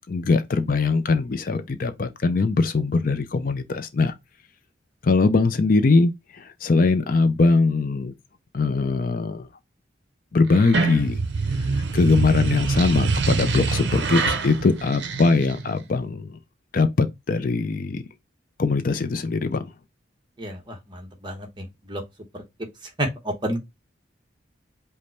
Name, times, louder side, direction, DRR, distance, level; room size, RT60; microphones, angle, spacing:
voice 1, 0.1-4.1 5.0-8.1 8.5-9.5 10.3-11.2 11.6-16.4 16.7-18.0 18.6-19.7, left 3 dB, 45° left, 0.4 m, -21 dB
sound 1, 10.5-15.8, right 4 dB, 65° right, 0.7 m, -25 dB
voice 2, 20.4-22.0 22.3-22.4 23.0-23.6, right 1 dB, 25° right, 1.0 m, -30 dB
5.2 x 2.2 x 4.3 m
head